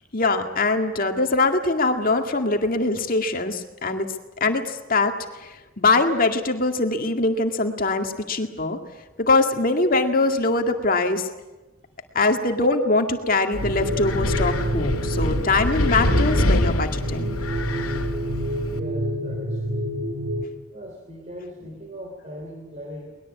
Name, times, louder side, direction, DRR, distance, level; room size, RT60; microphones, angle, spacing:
voice 1, 0.1-4.1 4.4-8.8 9.2-11.3 12.1-17.4, left 3 dB, 40° left, 5 dB, 2.1 m, -22 dB
Wind, 13.5-18.8, left 1 dB, 85° left, 2.3 m, -25 dB
sound 1, 13.6-20.4, equal, 70° right, 2.7 m, -28 dB
voice 2, 18.6-20.0 20.7-23.2, equal, 35° right, 2 dB, 3.5 m, -39 dB
22.5 x 20.5 x 8.4 m, 1.1 s
head